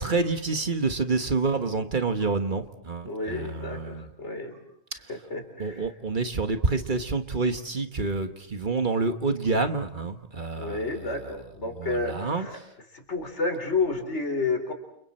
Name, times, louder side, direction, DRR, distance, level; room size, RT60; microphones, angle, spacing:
voice 1, 0.0-4.0 5.6-10.8 11.8-12.5, right 3 dB, 45° right, 7 dB, 1.5 m, -27 dB
voice 2, 3.1-4.6 5.1-5.9 10.6-12.6 12.9-14.7, left 3 dB, 85° left, 5 dB, 4.3 m, -30 dB
30.0 x 29.5 x 4.4 m, 0.75 s
omnidirectional pair, 1.2 m